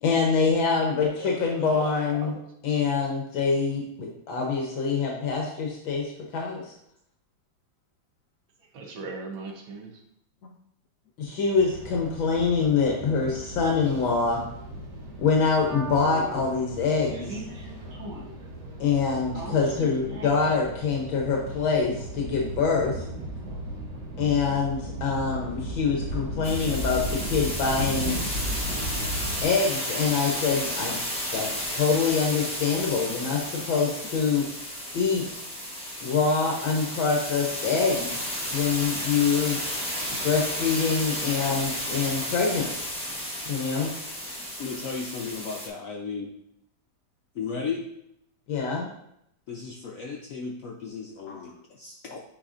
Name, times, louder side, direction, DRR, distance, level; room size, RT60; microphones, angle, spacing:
voice 1, 0.0-2.3 2.6-6.7 11.2-14.4 15.2-17.4 18.8-22.9 24.2-28.2 29.4-31.0 31.3-34.5 34.9-35.4 36.0-38.1 38.5-39.6 40.2-42.7 43.5-43.9 48.5-48.9 51.3-51.4, left 5 dB, 75° left, -1 dB, 1.6 m, -25 dB
voice 2, 1.2-1.9 2.2-2.4 8.7-9.9, right 3 dB, 75° right, 2 dB, 1.7 m, -38 dB
sound 1, 11.5-29.4, right 1 dB, 60° right, 1.9 m, -35 dB
sound 2, 26.4-45.7, equal, 5° left, 0.5 m, -33 dB
voice 3, 44.6-46.3 47.3-47.9 49.5-52.2, left 5 dB, 90° left, 0 dB, 0.7 m, -35 dB
8.6 x 4.9 x 2.5 m, 0.77 s
omnidirectional pair, 2.2 m